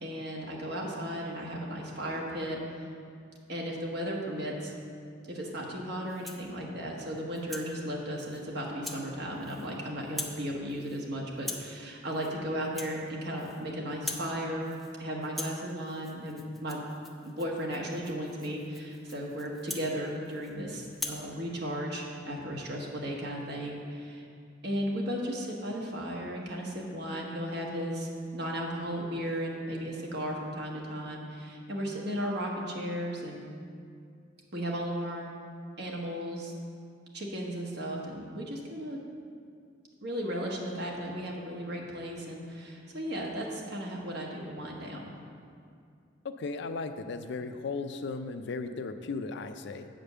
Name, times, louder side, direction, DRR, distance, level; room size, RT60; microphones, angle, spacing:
voice 1, 0.0-2.9 3.5-4.7 5.3-14.7 15.0-16.8 17.2-24.2 24.6-33.5 34.5-35.3 35.8-36.5 37.1-39.0 40.0-45.1, equal, 60° right, -1 dB, 1.3 m, -35 dB
Rattle (instrument), 6.0-6.5 7.0-7.7 8.2-8.4 8.8-9.0 9.3-9.8 10.0-10.4 10.7-11.0 11.4-11.7 12.1-12.3 12.6-13.6 13.9-14.3 14.6-15.0 15.2-20.5 20.9-21.2, left 1 dB, ahead, 0.6 m, -42 dB
voice 2, 46.2-49.9, left 4 dB, 65° left, 9 dB, 0.4 m, -36 dB
7.8 x 5.2 x 6.7 m, 2.3 s
head